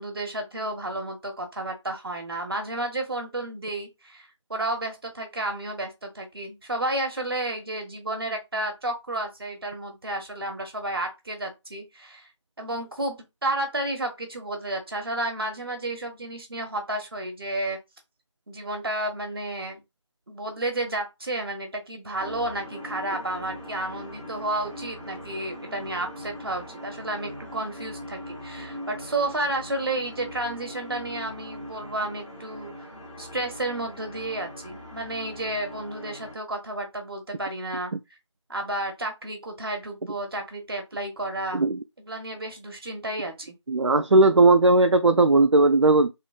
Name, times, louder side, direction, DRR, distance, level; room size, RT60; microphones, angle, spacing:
voice 1, 0.0-12.3 12.6-17.8 18.5-19.8 20.3-32.9 33.2-37.9 38.5-41.6 42.0-43.5, right 2 dB, 50° right, 1.3 m, -31 dB
sound 1, 22.2-36.3, left 1 dB, 5° left, 1.2 m, -41 dB
voice 2, 43.7-46.1, right 2 dB, 70° right, 0.5 m, -17 dB
4.1 x 3.8 x 2.3 m
figure-of-eight pair, 165°, 16 cm